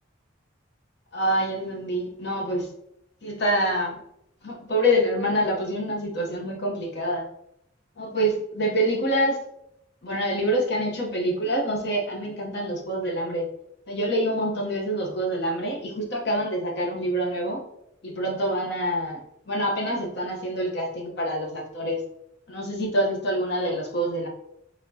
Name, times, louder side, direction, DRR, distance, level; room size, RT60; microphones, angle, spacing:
voice 1, 1.1-2.7 3.2-4.0 4.4-7.3 8.0-9.4 10.0-13.5 13.9-17.6 18.0-19.2 19.5-22.0 22.5-24.3, equal, 60° left, 0 dB, 0.9 m, -26 dB
4.2 x 3.5 x 2.7 m, 0.77 s
head